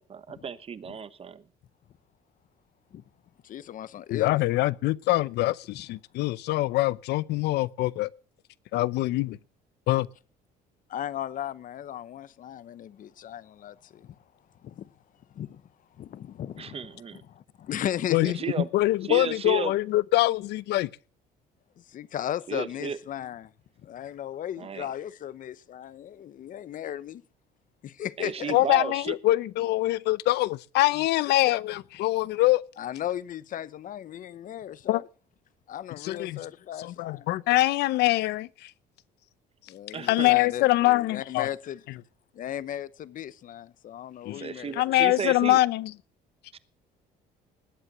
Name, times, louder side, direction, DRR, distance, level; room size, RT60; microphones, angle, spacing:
voice 1, 0.0-1.4 16.6-17.2 18.2-18.7 19.1-19.7 22.5-23.0 24.6-24.9 28.2-29.2 39.9-40.4 44.3-45.6 46.5-46.6, right 7 dB, 35° right, 1.2 m, -34 dB
voice 2, 3.4-4.4 10.9-14.1 14.6-14.9 15.3-15.6 16.0-16.8 17.1-18.5 21.9-23.5 23.8-27.2 27.8-28.5 32.8-35.0 35.7-37.3 39.7-41.8 42.3-44.9, left 11 dB, 50° left, 0.9 m, -36 dB
voice 3, 4.1-8.1 8.7-9.4 9.9-10.1 18.1-20.9 28.5-32.6 34.9-35.0 36.0-36.4 36.8-38.7 40.0-41.5 44.2-44.4 44.7-45.9, left 17 dB, 80° left, 0.7 m, -24 dB
19.5 x 8.2 x 6.1 m
cardioid pair, 110°, 17 cm